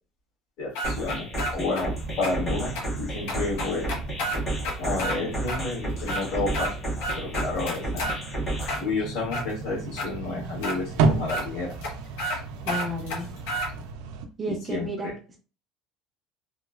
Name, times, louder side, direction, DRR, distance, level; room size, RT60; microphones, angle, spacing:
voice 1, 0.6-3.9 4.8-6.8 7.2-8.1 8.8-11.8 14.5-15.2, left 3 dB, 60° left, -4 dB, 1.5 m, -31 dB
sound 1, 0.8-1.8 2.2-2.3 2.8-2.9 3.3-5.2 5.5-5.6 6.0-6.7 7.0-8.2 8.6-9.5 10.0-10.1 10.6-10.8 11.3-11.4 11.8-11.9 12.2-12.4 12.7-13.7, equal, 90° left, 0.8 m, -30 dB
sound 2, 0.8-8.8, right 2 dB, 20° left, 0.8 m, -32 dB
sound 3, 1.9-14.3, right 4 dB, 85° right, 0.4 m, -34 dB
voice 2, 12.6-13.3 14.4-15.1, right 1 dB, 15° right, 2 dB, 0.4 m, -32 dB
2.9 x 2.1 x 2.4 m, 0.36 s
cardioid pair, 170°, 0 cm